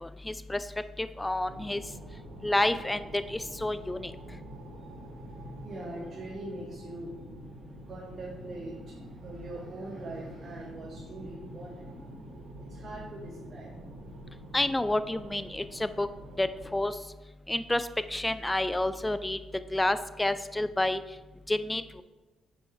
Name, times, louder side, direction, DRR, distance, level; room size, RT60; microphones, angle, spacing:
voice 1, 0.0-0.6 1.0-1.8 2.4-4.1 14.5-16.1 16.4-16.9 17.5-19.4 19.7-21.0 21.5-22.0, left 1 dB, 10° left, 12 dB, 0.3 m, -29 dB
sound 1, 1.4-16.8, right 1 dB, 80° right, 1.0 m, -47 dB
voice 2, 4.7-7.1 7.8-13.7, right 1 dB, 45° right, -3 dB, 1.1 m, -43 dB
5.3 x 4.2 x 4.8 m, 1.1 s
cardioid pair, 90°, 0 cm